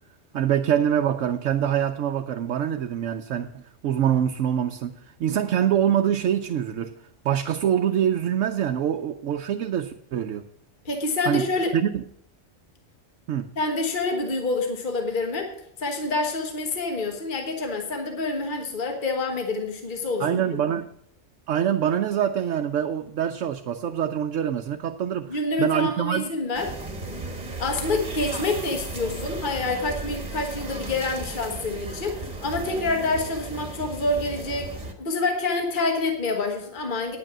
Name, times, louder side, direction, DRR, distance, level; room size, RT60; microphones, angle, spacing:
voice 1, 0.3-6.9 7.2-10.4 11.3-11.5 11.7-12.0 13.3-13.5 20.2-20.8 21.5-26.2, right 9 dB, 80° right, 1.0 m, -25 dB
voice 2, 10.8-11.7 13.6-15.5 15.8-20.4 25.3-26.7 27.6-34.7 35.0-37.2, left 3 dB, 40° left, 1.5 m, -27 dB
sound 1, 26.5-34.9, right 2 dB, 35° right, 1.4 m, -35 dB
9.6 x 9.0 x 6.0 m
omnidirectional pair, 1.3 m